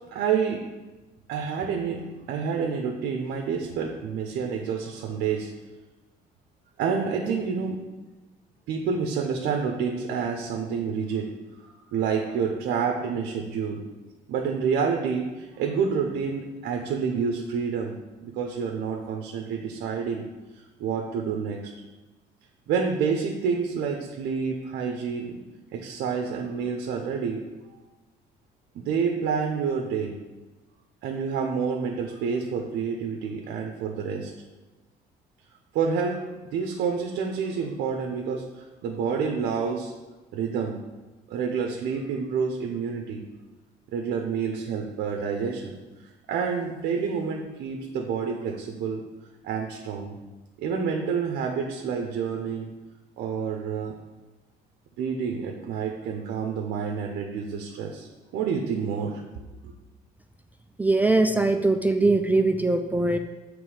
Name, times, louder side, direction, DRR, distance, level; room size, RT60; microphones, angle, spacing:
voice 1, 0.1-0.6 1.3-5.5 6.8-7.8 8.7-11.3 11.9-13.8 14.3-20.2 20.8-21.6 22.7-25.4 25.7-27.4 28.7-30.1 31.0-34.3 35.7-36.2 36.5-39.9 40.3-40.8 41.3-43.2 43.9-45.8 46.3-49.0 49.4-50.1 50.6-52.7 53.2-54.0 55.0-59.2 59.6-59.7, right 6 dB, 75° right, 2 dB, 0.7 m, -28 dB
voice 2, 60.8-63.2, right 2 dB, 10° right, 6 dB, 0.3 m, -21 dB
6.9 x 3.3 x 4.8 m, 1.1 s
cardioid pair, 110°, 17 cm